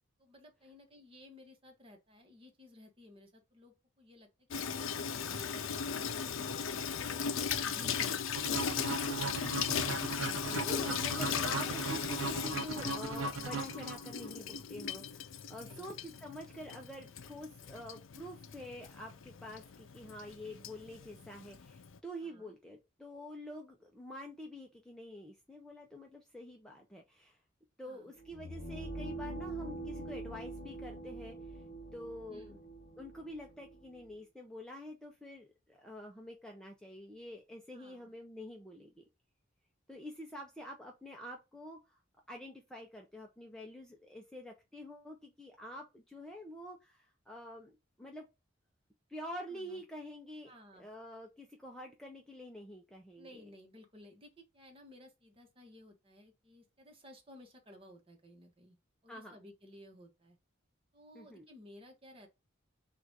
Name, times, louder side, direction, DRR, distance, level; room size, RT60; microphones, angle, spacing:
voice 1, 0.2-8.0 15.6-16.0 22.2-22.5 27.8-28.1 32.3-32.6 37.7-38.1 49.5-49.8 50.4-50.9 53.2-58.8 59.0-60.4 60.9-62.3, left 1 dB, 25° right, 1.2 m, -57 dB
Water tap faucet / Sink (filling or washing), 4.5-22.0, left 7 dB, 75° left, 0.5 m, -38 dB
voice 2, 7.7-8.2 10.6-27.4 27.8-31.4 31.9-32.6 33.0-39.1 39.9-41.8 42.3-48.3 49.1-53.4 59.1-59.4 61.1-61.4, left 1 dB, 5° left, 0.6 m, -47 dB
sound 1, 8.3-14.3, right 4 dB, 85° right, 0.6 m, -38 dB
sound 2, 28.2-34.1, right 2 dB, 35° left, 1.0 m, -44 dB
3.9 x 2.5 x 4.6 m
head